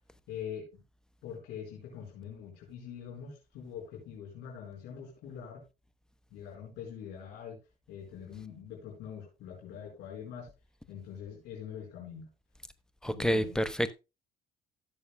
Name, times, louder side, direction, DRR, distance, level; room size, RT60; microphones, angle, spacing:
voice 1, 0.3-0.7 1.2-5.6 6.3-7.6 7.9-10.5 10.9-12.3 13.1-13.6, left 8 dB, 85° left, 4.6 m, -43 dB
voice 2, 13.0-13.9, equal, 5° left, 0.9 m, -28 dB
16.0 x 7.1 x 2.2 m
cardioid pair, 110°, 17 cm